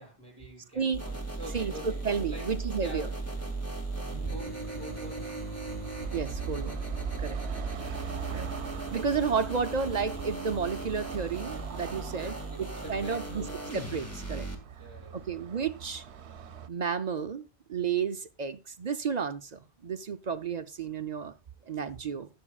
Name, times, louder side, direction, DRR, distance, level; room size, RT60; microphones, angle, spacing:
voice 1, 0.0-2.5 2.8-3.2 3.9-5.4 12.1-13.6 14.8-15.5, right 1 dB, 25° right, 6.9 m, -46 dB
sound 1, 0.9-14.5, right 3 dB, 15° left, 2.0 m, -37 dB
voice 2, 1.5-3.1 4.1-4.3 6.1-6.8 7.2-7.4 8.3-8.5 8.9-13.5 13.7-14.5 15.1-16.0 16.7-21.3 21.7-22.3, right 6 dB, 45° right, 0.6 m, -32 dB
Car passing by / Traffic noise roadway noise, 2.4-16.7, right 7 dB, 85° right, 1.0 m, -43 dB
20.0 x 7.2 x 2.3 m
omnidirectional pair, 1.1 m